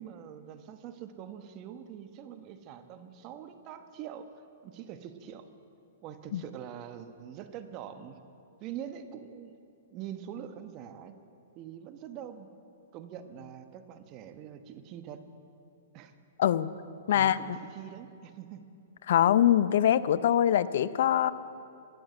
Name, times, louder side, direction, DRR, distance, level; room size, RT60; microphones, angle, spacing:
voice 1, 0.0-4.3 4.6-5.4 6.0-8.2 8.6-9.6 9.9-11.2 11.5-12.5 12.9-15.2 15.9-16.1 17.1-18.7, right 9 dB, 35° right, 8 dB, 1.1 m, -44 dB
voice 2, 19.1-21.3, left 11 dB, 65° left, 15 dB, 0.5 m, -23 dB
14.0 x 10.5 x 7.8 m, 2.6 s
hypercardioid pair, 125°, 0 cm